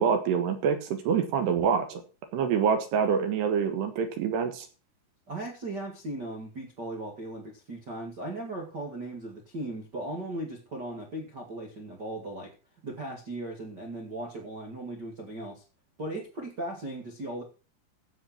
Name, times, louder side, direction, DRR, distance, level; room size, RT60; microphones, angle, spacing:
voice 1, 0.0-2.0 2.3-4.7, right 6 dB, 65° right, 8 dB, 3.1 m, -26 dB
voice 2, 5.3-12.5 12.8-15.6 16.0-17.4, right 1 dB, 85° right, 0 dB, 0.9 m, -37 dB
15.5 x 5.8 x 5.9 m, 0.33 s
omnidirectional pair, 5.9 m